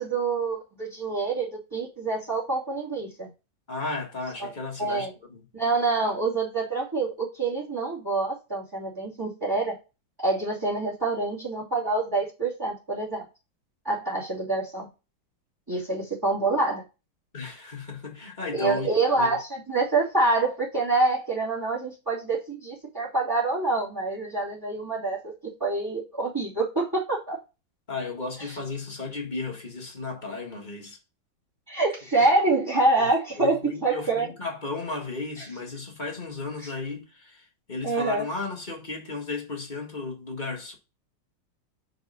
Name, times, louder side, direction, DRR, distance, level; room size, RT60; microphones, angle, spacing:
voice 1, 0.0-3.3 4.4-4.5 4.8-5.1 5.5-9.7 10.2-13.2 13.8-14.9 15.7-16.8 18.5-27.4 28.5-28.6 31.7-34.3 37.8-38.3, right 3 dB, 10° right, 2.6 m, -26 dB
voice 2, 3.7-5.5 15.7-15.8 17.3-18.9 19.2-19.4 27.9-31.0 32.2-32.3 33.0-33.1 33.4-40.7, left 3 dB, 25° left, 1.7 m, -34 dB
5.3 x 4.8 x 5.3 m
omnidirectional pair, 2.1 m